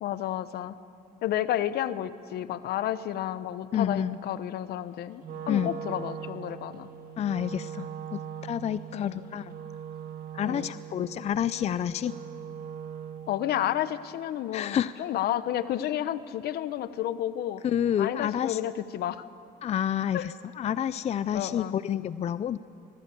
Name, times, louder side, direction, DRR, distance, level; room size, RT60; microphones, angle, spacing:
voice 1, 0.0-0.7 1.2-6.9 8.9-9.2 10.4-10.7 13.3-17.6 18.0-19.2 20.1-20.3 21.3-21.7, left 12 dB, 70° left, 14 dB, 1.0 m, -31 dB
voice 2, 3.7-4.2 5.5-5.7 7.2-9.5 10.3-12.2 14.5-15.0 17.6-18.6 19.6-22.6, left 9 dB, 40° left, 15 dB, 0.5 m, -29 dB
Wind instrument woodwind instrument, 5.2-13.4, right 7 dB, 60° right, 1.9 m, -40 dB
25.0 x 18.5 x 8.5 m, 2.7 s
cardioid pair, 110°, 17 cm